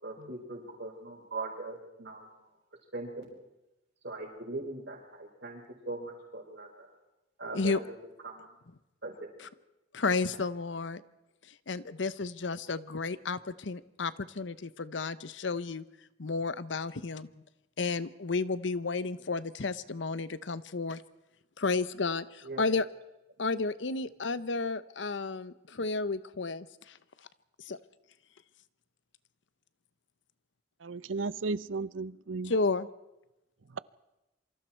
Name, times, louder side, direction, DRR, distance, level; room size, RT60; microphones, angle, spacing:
voice 1, 0.0-2.3 2.9-3.3 4.0-6.9 7.4-7.9 8.2-8.5 9.0-9.1 22.4-22.6, right 2 dB, 65° right, 5.3 m, -40 dB
voice 2, 9.9-11.0 11.7-15.8 16.2-17.3 17.8-21.0 21.6-22.9 23.4-26.7 27.7-27.8 32.4-32.9, left 3 dB, 70° left, 0.8 m, -32 dB
voice 3, 30.8-32.6, right 3 dB, 90° right, 0.7 m, -34 dB
27.0 x 24.5 x 4.5 m
head